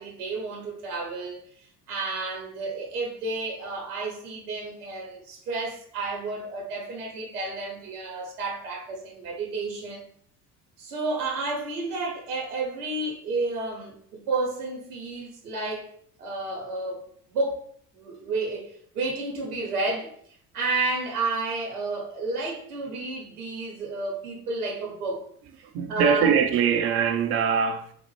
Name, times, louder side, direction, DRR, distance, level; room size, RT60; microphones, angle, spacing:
voice 1, 0.0-1.4 1.9-10.1 10.8-15.9 16.2-17.6 17.9-20.1 20.5-25.3 25.9-26.3, right 3 dB, 70° right, 1.0 m, -31 dB
voice 2, 25.7-27.9, right 7 dB, 30° right, 0.4 m, -22 dB
3.9 x 2.1 x 3.1 m
figure-of-eight pair, 60°, 47 cm